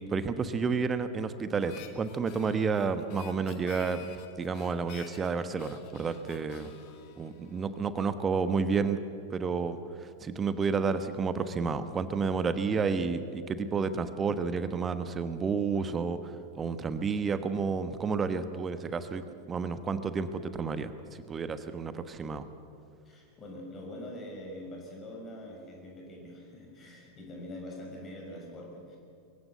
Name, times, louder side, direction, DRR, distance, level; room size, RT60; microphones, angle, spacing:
voice 1, 0.0-4.0 4.4-6.8 7.2-9.0 9.3-16.2 16.6-22.5, right 5 dB, 20° right, 11 dB, 1.2 m, -31 dB
Harmonica, 1.6-8.1, left 10 dB, 45° left, 2.0 m, -51 dB
voice 2, 23.1-29.0, left 1 dB, 25° left, 0 dB, 5.6 m, -44 dB
23.0 x 15.5 x 8.2 m, 2.4 s
figure-of-eight pair, 90°, 0 cm